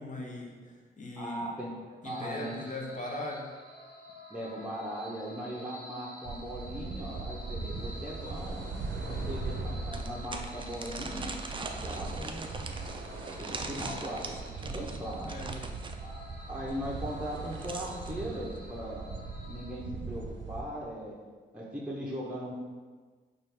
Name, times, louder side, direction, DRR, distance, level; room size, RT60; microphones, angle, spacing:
voice 1, 0.0-1.5 2.0-3.5 8.9-9.4 13.6-14.0 15.2-15.7, left 2 dB, 40° left, -1 dB, 0.9 m, -40 dB
voice 2, 1.2-2.6 4.3-8.7 9.1-12.4 13.4-15.3 16.0-19.1 19.5-21.1 21.5-22.5, equal, 5° right, -5 dB, 0.8 m, -39 dB
sound 1, 2.0-19.7, equal, 55° left, 1.3 m, -50 dB
sound 2, 6.2-20.6, right 3 dB, 65° right, 0.6 m, -40 dB
sound 3, 9.9-16.0 17.2-18.2, right 3 dB, 25° right, 0.4 m, -41 dB
4.0 x 2.5 x 3.3 m, 1.4 s
supercardioid pair, 45°, 20 cm